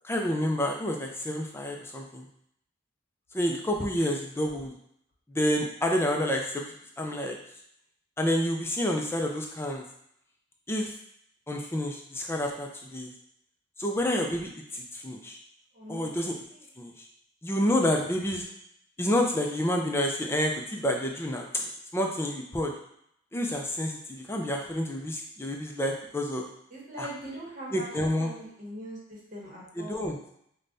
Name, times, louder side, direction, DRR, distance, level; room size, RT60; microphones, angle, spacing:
voice 1, 0.0-2.3 3.3-4.7 5.3-7.4 8.2-9.8 10.7-10.9 11.5-13.1 13.8-15.4 15.9-16.3 16.8-16.9 17.4-18.4 19.0-21.5 21.9-22.7 23.3-26.5 27.0-27.1 27.7-28.3 29.8-30.2, left 1 dB, 10° left, 1 dB, 0.4 m, -29 dB
voice 2, 15.7-16.1 16.5-16.6 26.7-27.9 28.2-30.1, right 1 dB, 45° right, -5 dB, 1.2 m, -41 dB
4.9 x 2.2 x 2.6 m, 0.72 s
head